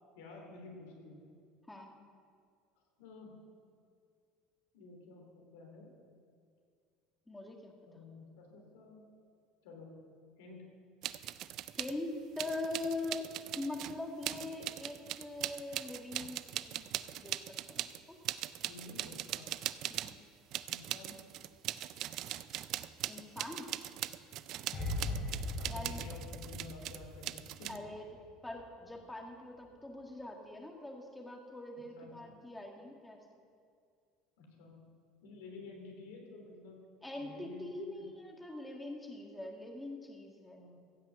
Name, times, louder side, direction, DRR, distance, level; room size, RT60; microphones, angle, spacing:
voice 1, 0.1-1.2 3.0-3.4 4.7-5.9 7.8-9.0 9.6-9.9 10.4-10.7 14.3-14.4 18.6-19.5 20.7-21.2 24.9-25.2 25.6-27.8 31.9-32.2 34.4-34.8 35.2-36.8 37.2-38.0 40.5-40.7, left 3 dB, 85° left, 0 dB, 3.4 m, -51 dB
voice 2, 7.3-8.0 11.7-18.2 19.9-20.2 23.1-23.7 25.7-26.0 27.7-28.0 28.4-33.2 37.0-40.6, left 2 dB, 10° left, 1 dB, 1.7 m, -43 dB
sound 1, 11.0-11.9 12.4-20.2 20.5-27.8, right 13 dB, 60° right, 0.5 m, -40 dB
sound 2, 24.7-27.9 28.2-28.4, left 2 dB, 40° left, 3.4 m, -39 dB
16.0 x 6.1 x 7.7 m, 2.3 s
supercardioid pair, 100°, 0 cm